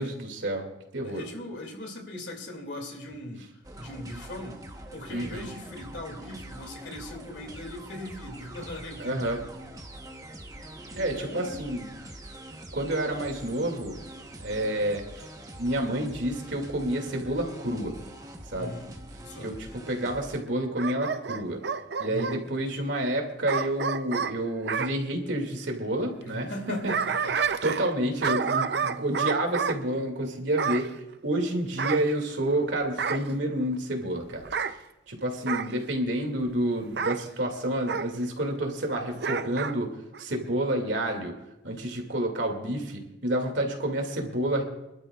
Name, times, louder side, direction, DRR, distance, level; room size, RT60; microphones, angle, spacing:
voice 1, 0.0-1.2 5.1-5.5 9.0-9.4 11.0-11.8 12.7-14.0 14.4-15.3 15.6-17.9 18.5-18.7 19.4-21.6 22.0-26.9 27.6-30.9 31.2-34.5 35.1-41.3 41.6-44.6, right 1 dB, 90° right, 3 dB, 2.4 m, -29 dB
voice 2, 1.0-4.6 4.9-9.5 10.9-11.7 18.5-19.6 22.0-22.4 26.2-27.4, left 1 dB, 80° left, 3 dB, 2.5 m, -39 dB
sound 1, 3.6-20.4, right 1 dB, 20° right, 1.1 m, -44 dB
Bark / Growling, 20.8-22.4 23.5-24.9 26.5-27.9 28.2-29.8 30.6-30.9 31.8-32.6 33.0-33.3 34.4-34.7 35.5-35.7 37.0-37.2 37.9-38.1 39.2-39.8 40.1-40.2, right 6 dB, 65° right, 0.6 m, -29 dB
26.0 x 12.0 x 2.4 m, 0.94 s
head